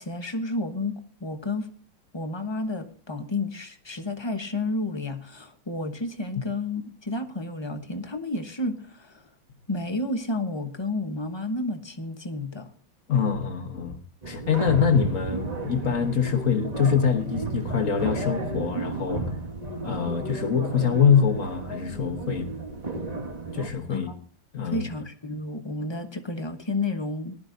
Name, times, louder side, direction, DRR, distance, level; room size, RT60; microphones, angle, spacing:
voice 1, 0.0-1.7 2.1-9.2 9.7-12.7 23.9-24.2 24.7-27.4, left 2 dB, 20° left, 6 dB, 0.7 m, -31 dB
voice 2, 13.1-14.0 14.3-19.4 19.8-22.5 23.5-24.1 24.5-24.9, left 7 dB, 45° left, 6 dB, 1.5 m, -24 dB
sound 1, 14.2-23.7, right 2 dB, 25° right, 1.1 m, -33 dB
19.5 x 12.5 x 2.6 m, 0.41 s
omnidirectional pair, 2.1 m